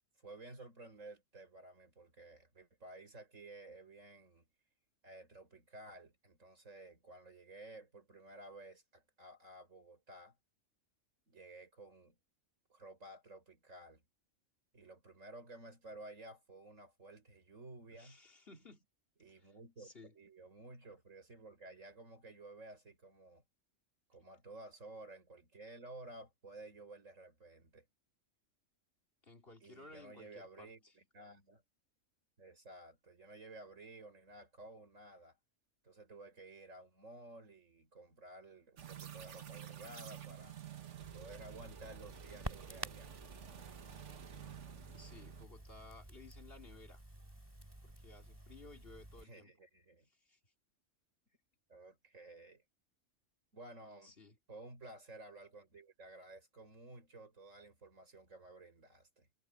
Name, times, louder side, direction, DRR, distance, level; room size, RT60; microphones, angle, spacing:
voice 1, 0.2-4.5 5.0-10.4 11.3-12.2 12.7-14.0 14.7-18.2 19.2-23.4 24.1-27.9 29.6-31.6 32.4-35.4 35.8-40.6 41.1-43.1 49.2-50.1 51.7-52.6 53.5-54.2 54.5-59.3, right 2 dB, 85° right, 5.7 m, -54 dB
voice 2, 17.9-18.9 19.4-20.1 29.2-31.0 44.9-47.0 47.8-49.5 50.1-50.4 54.0-54.4, left 3 dB, 50° left, 3.3 m, -57 dB
sound 1, 38.8-45.5, right 10 dB, 70° right, 1.4 m, -51 dB
Crackle, 41.0-49.2, right 1 dB, 20° right, 3.0 m, -51 dB
omnidirectional pair, 1.3 m